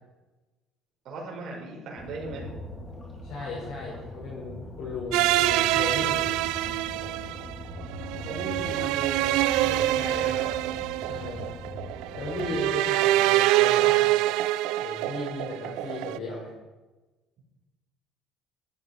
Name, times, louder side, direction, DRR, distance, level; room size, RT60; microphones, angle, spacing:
voice 1, 1.0-2.5 8.2-10.6, right 3 dB, 45° right, -2 dB, 4.8 m, -37 dB
sound 1, 2.0-12.6, left 1 dB, 15° left, 3.3 m, -41 dB
voice 2, 3.2-6.4 9.9-10.3 11.0-11.5 12.1-14.2 14.8-16.5, left 3 dB, 55° left, -7 dB, 6.6 m, -36 dB
sound 2, 5.1-16.2, right 16 dB, 80° right, 0.4 m, -25 dB
17.5 x 12.0 x 5.0 m, 1.2 s
cardioid pair, 165°, 0 cm